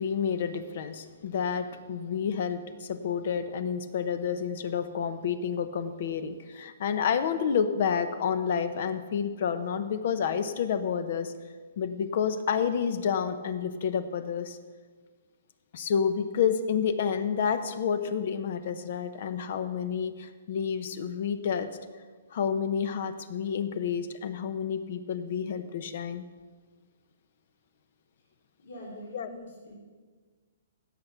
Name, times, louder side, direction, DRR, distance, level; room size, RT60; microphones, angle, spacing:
voice 1, 0.0-11.3 11.8-14.6 15.7-21.7 22.3-26.2 29.1-29.3, left 7 dB, 50° left, 11 dB, 0.8 m, -29 dB
voice 2, 28.6-29.7, left 1 dB, 70° left, -3 dB, 3.3 m, -44 dB
16.0 x 6.7 x 5.8 m, 1.5 s
hypercardioid pair, 165°, 0 cm